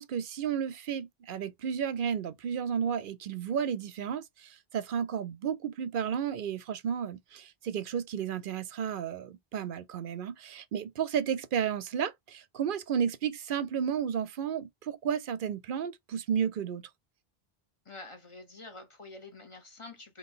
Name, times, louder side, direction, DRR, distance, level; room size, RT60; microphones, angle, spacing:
voice 1, 0.0-16.8, right 8 dB, 65° right, 0.7 m, -32 dB
voice 2, 17.8-20.2, left 3 dB, 30° left, 1.1 m, -47 dB
3.7 x 3.0 x 3.7 m
omnidirectional pair, 1.0 m